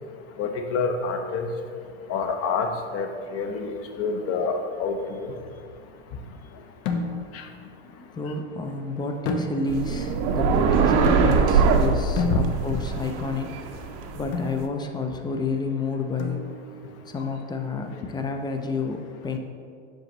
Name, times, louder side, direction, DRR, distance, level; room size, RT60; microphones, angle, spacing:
voice 1, 0.4-1.5 2.1-3.7 4.0-5.3 7.3-7.4 10.5-10.6 12.2-12.4 12.7-12.8, left 4 dB, 40° left, 5 dB, 0.7 m, -27 dB
sound 1, 6.9-7.5 9.2-10.0 11.0-11.6 12.2-13.0 14.3-14.6 16.2-16.8, left 4 dB, 70° left, 0.9 m, -31 dB
voice 2, 8.0-13.8 14.1-16.4 17.1-19.4, left 3 dB, 15° left, 5 dB, 0.4 m, -30 dB
sound 2, 9.7-14.6, right 5 dB, 45° right, 0.6 m, -22 dB
7.8 x 4.9 x 3.0 m, 2.2 s
hypercardioid pair, 105°, 35 cm